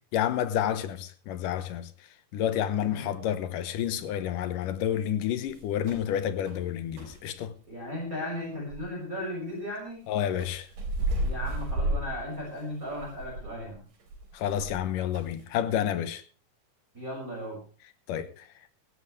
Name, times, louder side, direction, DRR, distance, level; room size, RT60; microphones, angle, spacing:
voice 1, 0.1-1.9 2.3-7.5 10.1-10.7 14.3-16.2 18.1-18.5, left 10 dB, 80° left, 2.6 m, -29 dB
sound 1, 5.5-6.1 6.5-6.6 7.0-7.2 8.7-8.8 10.4-14.8 15.1-15.4, right 1 dB, 70° right, 5.3 m, -33 dB
voice 2, 7.7-10.0 11.2-13.8 16.9-17.6, left 1 dB, 25° right, 6.6 m, -36 dB
17.5 x 16.0 x 3.2 m
omnidirectional pair, 3.9 m